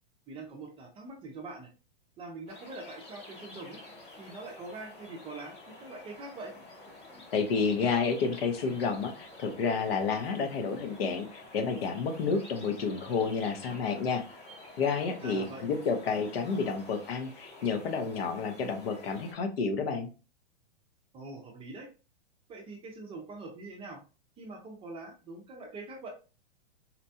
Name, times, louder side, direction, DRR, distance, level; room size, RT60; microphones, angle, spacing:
voice 1, 0.3-1.7 2.2-3.8 4.2-6.5 15.2-15.6 21.1-21.9 22.5-24.0 24.4-26.1, right 3 dB, 15° right, 2 dB, 0.6 m, -43 dB
sound 1, 2.5-19.3, left 2 dB, 20° left, 0.9 m, -50 dB
voice 2, 7.3-14.2 14.8-20.1, left 5 dB, 65° left, 7 dB, 1.0 m, -30 dB
4.3 x 2.2 x 2.7 m, 0.33 s
hypercardioid pair, 140°, 32 cm